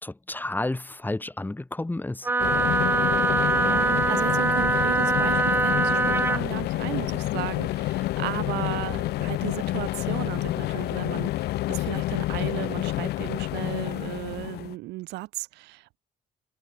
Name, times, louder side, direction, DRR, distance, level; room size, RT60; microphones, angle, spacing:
voice 1, 0.0-2.3, left 2 dB, 10° left, 3.4 m, -31 dB
Wind instrument woodwind instrument, 2.2-6.4, right 3 dB, 10° right, 0.6 m, -23 dB
sound 1, 2.4-14.7, left 16 dB, 75° left, 1.0 m, -28 dB
voice 2, 3.6-16.0, right 20 dB, 90° right, 6.3 m, -35 dB
cardioid pair, 110°, 17 cm